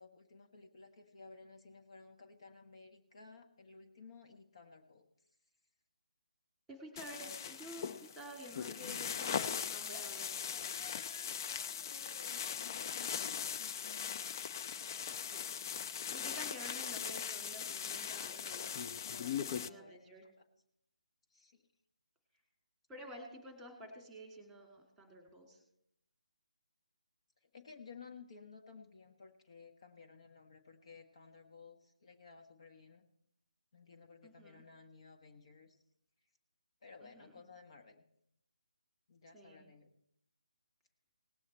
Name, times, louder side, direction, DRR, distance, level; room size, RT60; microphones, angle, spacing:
voice 1, 0.0-5.1 7.1-7.4 8.8-9.2 9.9-14.2 19.0-20.0 20.4-20.5 21.3-21.7 27.4-33.1 33.7-35.8 36.8-38.0 39.1-39.9, left 4 dB, 45° left, 4 dB, 1.2 m, -56 dB
voice 2, 6.7-10.3 15.1-15.4 15.8-18.9 19.5-20.2 22.9-25.6 34.2-34.6 37.0-37.4 39.3-39.6, equal, 5° right, 3 dB, 2.4 m, -51 dB
sound 1, 7.0-19.7, left 8 dB, 30° left, 0.4 m, -40 dB
18.5 x 8.3 x 4.3 m, 0.76 s
figure-of-eight pair, 150°, 4 cm